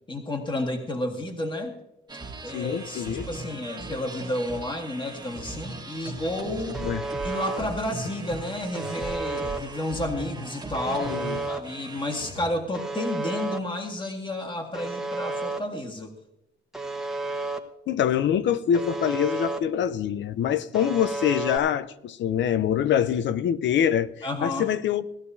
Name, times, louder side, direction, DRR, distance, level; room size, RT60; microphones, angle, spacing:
voice 1, 0.1-1.8 2.4-6.8 7.2-11.2 11.5-16.1 24.2-24.7, left 1 dB, 25° left, 1.9 m, -31 dB
sound 1, 2.1-12.4, right 3 dB, 20° right, 1.6 m, -38 dB
voice 2, 2.5-3.3 6.8-7.0 11.0-11.4 17.9-25.0, left 9 dB, 65° left, 0.7 m, -25 dB
Alarm, 6.7-7.6 8.7-9.6 10.7-11.6 12.7-13.6 14.7-15.6 16.7-17.6 18.7-19.6 20.7-21.6, right 3 dB, ahead, 1.2 m, -31 dB
18.0 x 12.0 x 2.8 m
cardioid pair, 90°, 20 cm